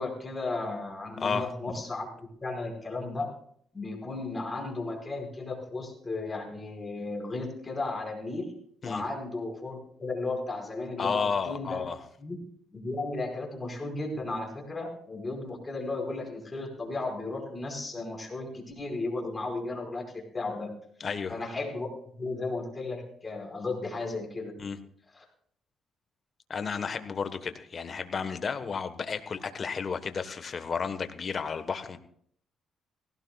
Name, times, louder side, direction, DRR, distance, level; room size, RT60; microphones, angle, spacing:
voice 1, 0.0-2.1 2.4-3.3 3.7-8.5 8.8-11.9 12.2-12.4 12.7-20.7 21.3-21.9 22.2-24.5 25.1-25.2, left 3 dB, 25° left, 1 dB, 5.0 m, -34 dB
voice 2, 11.0-12.0 21.0-21.3 24.6-24.8 26.5-32.0, left 5 dB, 45° left, 9 dB, 1.2 m, -32 dB
19.0 x 16.5 x 2.4 m, 0.64 s
cardioid pair, 90°, 0 cm